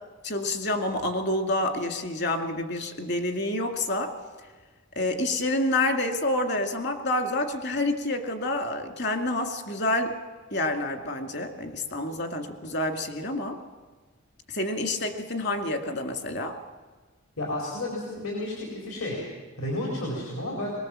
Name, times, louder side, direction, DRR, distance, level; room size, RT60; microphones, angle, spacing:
voice 1, 0.2-4.1 5.0-10.2 10.5-13.6 14.5-16.6, left 1 dB, 50° left, 6 dB, 2.2 m, -28 dB
voice 2, 17.4-19.2 19.6-20.7, left 1 dB, 75° left, -2 dB, 4.7 m, -31 dB
23.0 x 20.0 x 7.5 m, 1.4 s
head